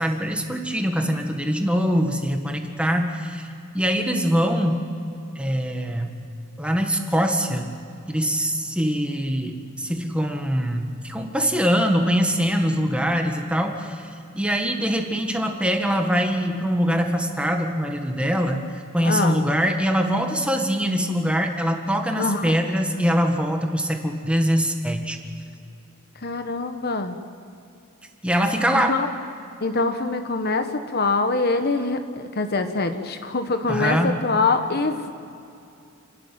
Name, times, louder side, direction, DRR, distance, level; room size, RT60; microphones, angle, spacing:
voice 1, 0.0-3.4 3.7-4.8 5.3-6.1 6.6-7.7 8.1-14.1 14.3-25.2 28.2-28.9 33.7-34.2, equal, 5° right, 3 dB, 1.7 m, -23 dB
voice 2, 19.0-19.4 22.2-22.5 26.2-27.2 28.7-29.1 29.6-35.1, left 3 dB, 50° left, 7 dB, 1.2 m, -24 dB
29.0 x 12.5 x 9.2 m, 2.6 s
head